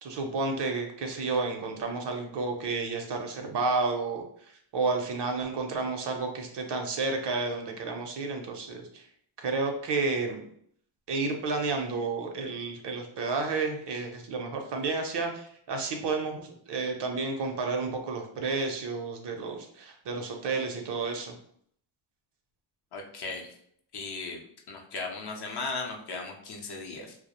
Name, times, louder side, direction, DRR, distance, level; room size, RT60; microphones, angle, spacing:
voice 1, 0.0-9.1 9.4-10.4 11.1-21.3, right 3 dB, 55° right, 4 dB, 0.6 m, -31 dB
voice 2, 22.9-23.5 23.9-24.4 24.7-27.2, left 3 dB, 55° left, 1 dB, 0.6 m, -37 dB
2.3 x 2.0 x 2.8 m, 0.65 s
cardioid pair, 100°, 50 cm